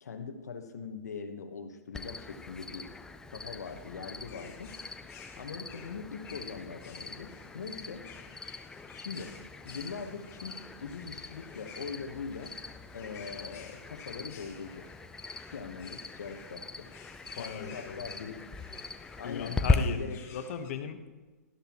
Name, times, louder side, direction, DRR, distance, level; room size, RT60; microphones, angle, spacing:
voice 1, 0.0-2.9 3.3-4.7 5.3-8.1 8.9-9.4 9.6-12.5 12.9-14.9 15.5-16.9 17.3-18.4 19.2-19.6 19.9-20.2, left 5 dB, 75° left, 8 dB, 1.2 m, -41 dB
Cricket, 1.9-19.7, left 4 dB, 5° left, 0.5 m, -39 dB
sound 1, 3.6-20.7, left 6 dB, 30° left, 1.7 m, -54 dB
voice 2, 17.4-18.2 19.2-21.0, left 7 dB, 55° left, 8 dB, 1.1 m, -37 dB
13.0 x 11.5 x 3.0 m, 1.2 s
hypercardioid pair, 130°, 9 cm